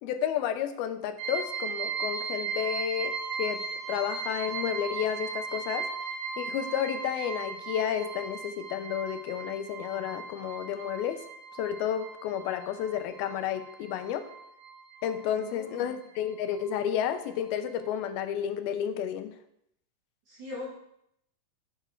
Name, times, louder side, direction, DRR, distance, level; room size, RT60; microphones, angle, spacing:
voice 1, 0.0-5.9 6.4-11.2 11.6-14.3 15.0-19.3, left 9 dB, 80° left, 8 dB, 2.5 m, -31 dB
sound 1, 1.2-15.5 15.7-16.8 17.1-17.2 17.7-17.8, right 5 dB, 85° right, 3.1 m, -37 dB
voice 2, 15.4-16.0 20.3-20.7, left 2 dB, 55° right, -7 dB, 3.4 m, -41 dB
9.0 x 6.9 x 4.5 m, 0.76 s
omnidirectional pair, 4.4 m